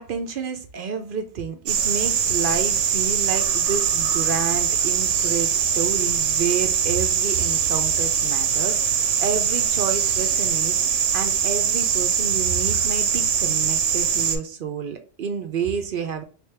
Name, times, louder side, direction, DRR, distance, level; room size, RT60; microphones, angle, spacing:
voice 1, 0.0-16.2, right 6 dB, 60° right, 7 dB, 0.6 m, -29 dB
sound 1, 1.7-14.4, right 7 dB, 85° right, 0.9 m, -22 dB
3.2 x 2.9 x 3.2 m, 0.36 s
omnidirectional pair, 1.2 m